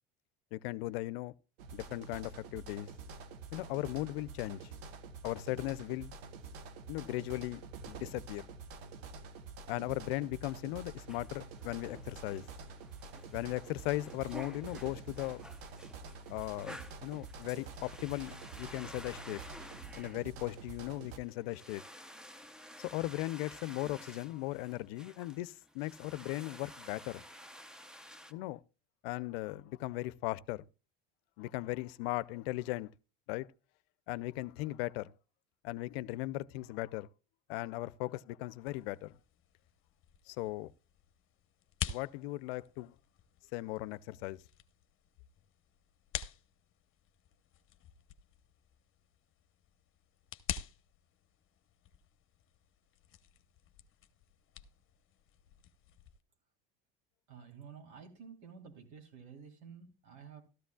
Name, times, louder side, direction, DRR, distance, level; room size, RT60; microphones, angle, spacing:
voice 1, 0.5-1.3 1.7-2.9 3.5-4.7 5.2-6.1 6.9-8.5 9.7-12.4 13.3-15.4 16.3-19.4 20.0-21.8 22.8-27.2 28.3-28.6 29.0-30.7 31.4-32.9 33.3-33.5 34.1-35.1 35.6-37.1 37.5-39.2 40.3-40.7 41.9-42.9 43.5-44.4, left 18 dB, 80° left, 0.6 m, -38 dB
sound 1, 1.6-21.2, right 4 dB, 85° right, 1.3 m, -48 dB
sound 2, 10.7-28.3, equal, ahead, 0.6 m, -52 dB
sound 3, 38.6-56.2, left 10 dB, 45° left, 0.9 m, -48 dB
voice 2, 57.3-60.4, right 6 dB, 65° right, 3.3 m, -51 dB
13.5 x 12.5 x 2.3 m
supercardioid pair, 105°, 30 cm